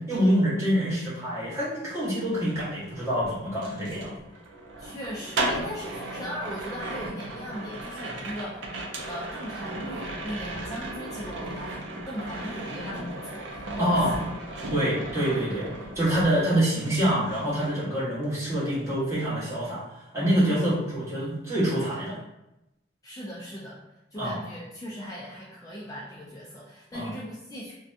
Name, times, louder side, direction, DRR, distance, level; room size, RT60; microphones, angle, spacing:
voice 1, 0.0-4.2 13.8-14.2 14.7-19.8 20.1-22.2 24.1-24.4 26.9-27.1, equal, 15° right, -10 dB, 1.0 m, -26 dB
sound 1, 2.3-16.5 16.8-18.2 18.5-18.9, right 2 dB, 70° right, 0.4 m, -36 dB
voice 2, 4.8-8.6 9.0-14.0 14.5-14.6 20.6-20.7 23.0-23.8 24.1-27.7, equal, 20° left, -6 dB, 0.3 m, -38 dB
2.6 x 2.2 x 2.5 m, 0.91 s
head